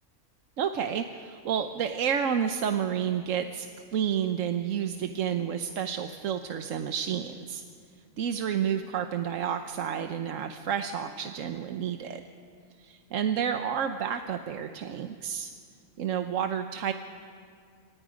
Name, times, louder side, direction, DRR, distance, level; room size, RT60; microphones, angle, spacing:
voice 1, 0.6-3.7 3.9-7.6 8.2-12.2 12.8-15.5 16.0-16.9, right 8 dB, 60° right, 7 dB, 1.1 m, -30 dB
28.5 x 25.5 x 5.1 m, 2.2 s
omnidirectional pair, 1.6 m